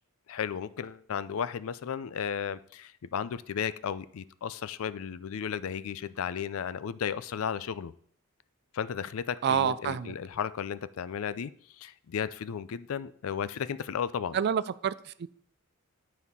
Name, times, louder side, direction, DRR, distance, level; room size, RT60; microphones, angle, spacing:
voice 1, 0.3-7.9 8.7-11.5 11.8-14.4, left 7 dB, 70° left, 16 dB, 0.4 m, -34 dB
voice 2, 9.4-10.1 14.3-15.3, right 8 dB, 50° right, 17 dB, 0.4 m, -28 dB
9.6 x 4.2 x 5.4 m, 0.62 s
head